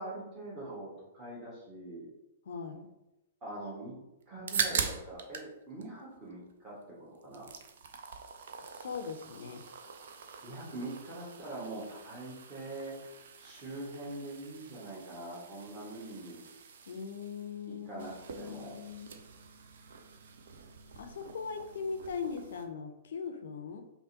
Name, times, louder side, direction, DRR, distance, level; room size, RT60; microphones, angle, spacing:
voice 1, 0.0-2.1 3.4-7.5 10.1-13.0 13.4-16.4 17.7-18.8, right 2 dB, 25° right, -7 dB, 1.2 m, -43 dB
voice 2, 2.5-2.9 8.7-9.6 16.9-19.1 21.0-23.8, left 5 dB, 55° left, 6 dB, 0.4 m, -40 dB
sound 1, 4.2-5.5 5.8-6.8 7.1-22.7, right 6 dB, 55° right, 0.4 m, -42 dB
5.3 x 2.1 x 2.6 m, 0.94 s
figure-of-eight pair, 110°, 0 cm